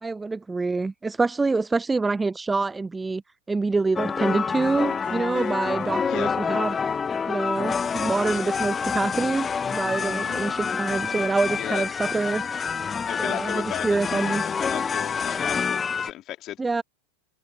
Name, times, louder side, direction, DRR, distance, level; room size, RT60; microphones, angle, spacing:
voice 1, 0.0-3.2 3.5-6.8 7.3-12.4 13.2-14.4 16.6-16.8, right 3 dB, 10° right, 0.5 m, -26 dB
sound 1, 4.0-16.1, left 6 dB, 20° left, 1.0 m, -27 dB
Harp, 4.5-10.0, left 15 dB, 55° left, 4.2 m, -54 dB
voice 2, 10.2-10.6 11.6-11.9 13.1-16.8, left 13 dB, 35° left, 3.2 m, -36 dB
figure-of-eight pair, 90°, 0 cm